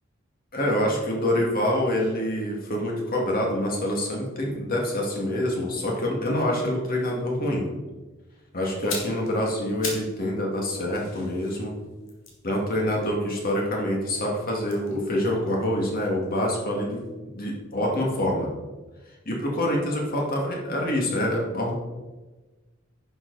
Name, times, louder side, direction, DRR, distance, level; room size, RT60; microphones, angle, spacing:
voice 1, 0.5-7.7 8.5-11.7 12.4-18.5 19.3-21.7, left 1 dB, 50° left, -1 dB, 2.2 m, -26 dB
sound 1, 8.7-10.2 10.5-13.8 14.6-16.6 16.9-17.1, left 3 dB, 80° left, 2.3 m, -39 dB
10.5 x 6.9 x 4.1 m, 1.2 s
head